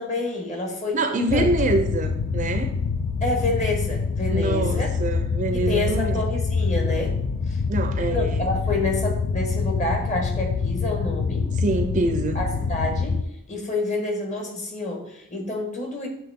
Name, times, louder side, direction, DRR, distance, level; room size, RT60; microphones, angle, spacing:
voice 1, 0.0-1.4 3.2-4.9 5.5-7.2 7.5-7.6 8.1-11.5 12.3-16.1, left 2 dB, 35° left, 1 dB, 1.3 m, -28 dB
voice 2, 0.9-2.7 4.3-6.2 7.7-8.5 11.5-12.4, right 2 dB, 35° right, 7 dB, 0.5 m, -25 dB
sound 1, 1.3-13.2, left 5 dB, 60° left, 0.3 m, -25 dB
7.8 x 3.5 x 3.6 m, 0.84 s
head